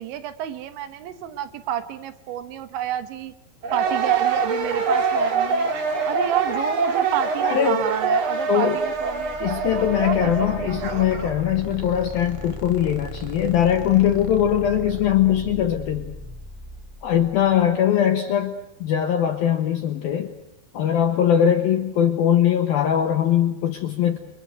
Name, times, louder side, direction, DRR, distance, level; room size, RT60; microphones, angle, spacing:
voice 1, 0.0-3.4 3.7-5.7 6.1-11.1, right 10 dB, 75° right, 11 dB, 3.4 m, -30 dB
sound 1, 3.6-11.3, right 4 dB, 45° right, 1.7 m, -24 dB
voice 2, 7.4-7.8 8.5-8.8 9.4-16.1 17.0-18.5 18.8-20.3 20.7-24.2, left 10 dB, 65° left, 5 dB, 2.5 m, -21 dB
sound 2, 8.8-17.7, right 1 dB, 25° right, 0.7 m, -37 dB
29.5 x 23.0 x 8.1 m, 0.79 s
omnidirectional pair, 5.7 m